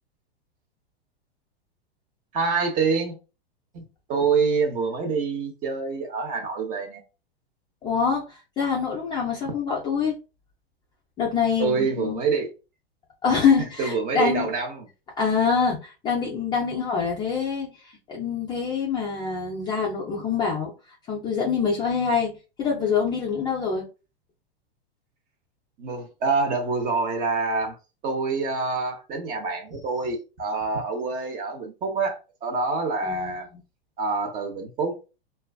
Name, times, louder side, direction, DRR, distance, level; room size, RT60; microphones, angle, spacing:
voice 1, 2.3-3.2 3.7-3.8 4.1-7.0 11.6-12.5 13.8-14.9 25.8-27.8 28.0-33.5 34.0-35.0, right 4 dB, 25° right, 0.6 m, -26 dB
voice 2, 7.8-10.1 11.2-12.2 13.2-14.5 15.2-20.7 21.1-22.3 22.6-23.8 33.0-33.4, left 6 dB, 15° left, 0.3 m, -25 dB
2.3 x 2.3 x 2.3 m
hypercardioid pair, 120°, 32 cm